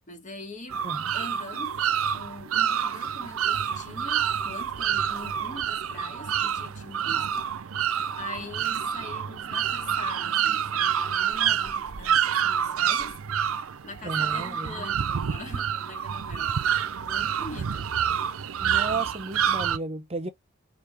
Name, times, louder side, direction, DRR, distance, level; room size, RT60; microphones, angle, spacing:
voice 1, 0.1-0.8 1.1-1.8 2.1-7.5 8.2-13.2 13.8-16.6 17.0-17.9, left 2 dB, 35° left, 1.4 m, -42 dB
sound 1, 0.7-19.8, right 8 dB, 85° right, 0.5 m, -27 dB
Chewing mastication, 8.6-8.8 9.5-9.6 9.8-10.0 10.4-10.5 10.9-12.4 12.7-13.9 14.3-14.4, right 3 dB, 65° right, 0.9 m, -49 dB
voice 2, 14.0-14.8 18.6-20.3, right 3 dB, 30° right, 0.7 m, -33 dB
4.9 x 2.8 x 3.4 m
head